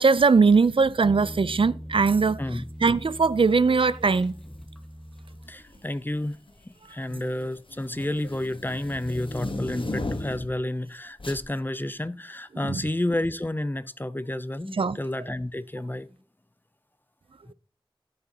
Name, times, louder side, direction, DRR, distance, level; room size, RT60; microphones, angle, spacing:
voice 1, 0.0-4.3 7.1-7.2 12.5-12.9 14.7-15.0, right 4 dB, 75° right, 0.4 m, -21 dB
sound 1, 1.0-5.9, equal, 5° left, 1.2 m, -41 dB
sound 2, 4.3-4.6 5.5-6.0 6.3-10.6 11.2-11.5, left 2 dB, 75° left, 1.1 m, -35 dB
voice 2, 5.5-6.4 6.9-16.1, left 1 dB, 20° left, 0.4 m, -30 dB
15.0 x 5.3 x 2.8 m
wide cardioid pair, 45°, 9 cm